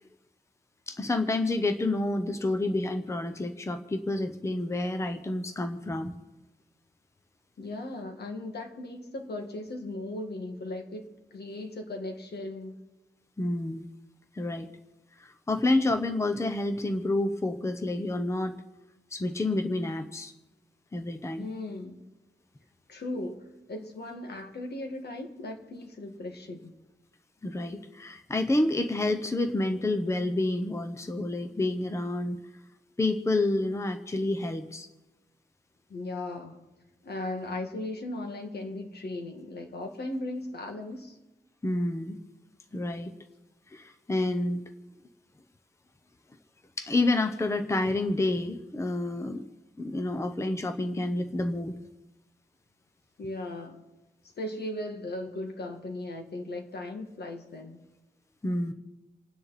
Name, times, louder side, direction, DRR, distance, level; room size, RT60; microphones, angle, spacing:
voice 1, 0.9-6.2 13.4-13.9 14.3-14.7 15.2-18.6 19.1-20.3 20.9-21.5 27.4-32.4 33.0-34.9 41.6-42.2 42.7-43.1 43.7-44.6 46.8-49.4 49.8-51.8 58.4-58.7, left 2 dB, 15° left, 8 dB, 0.8 m, -29 dB
voice 2, 7.6-12.8 21.4-22.0 22.9-26.7 35.9-36.6 37.0-41.2 53.2-53.8 54.4-57.8, left 2 dB, 65° left, 4 dB, 2.1 m, -37 dB
29.0 x 9.8 x 4.2 m, 1.1 s
wide cardioid pair, 170°, 18 cm